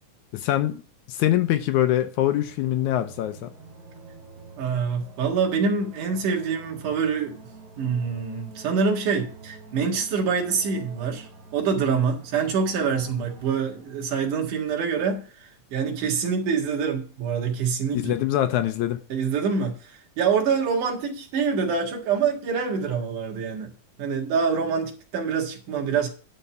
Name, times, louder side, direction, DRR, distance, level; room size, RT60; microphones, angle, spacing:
voice 1, 0.3-0.8 1.1-3.5 17.9-19.0, left 13 dB, 80° left, 1.9 m, -23 dB
sound 1, 2.4-14.4, right 4 dB, 45° right, 2.6 m, -47 dB
voice 2, 4.6-7.4 7.8-18.1 19.1-23.7 24.0-26.1, right 5 dB, 75° right, 3.2 m, -25 dB
11.0 x 4.5 x 7.1 m
omnidirectional pair, 3.7 m